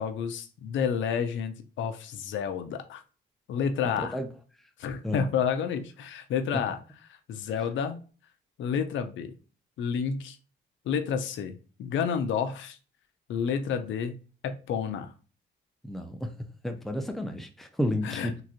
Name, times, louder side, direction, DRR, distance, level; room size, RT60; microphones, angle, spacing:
voice 1, 0.0-3.0 3.5-4.2 4.8-6.8 7.3-8.0 8.6-9.3 9.8-10.4 10.9-12.8 13.3-15.1 18.0-18.4, left 7 dB, 75° left, 0.6 m, -30 dB
voice 2, 15.9-16.2 16.6-18.3, left 1 dB, ahead, 0.6 m, -31 dB
3.7 x 2.9 x 2.5 m
cardioid pair, 90°, 20 cm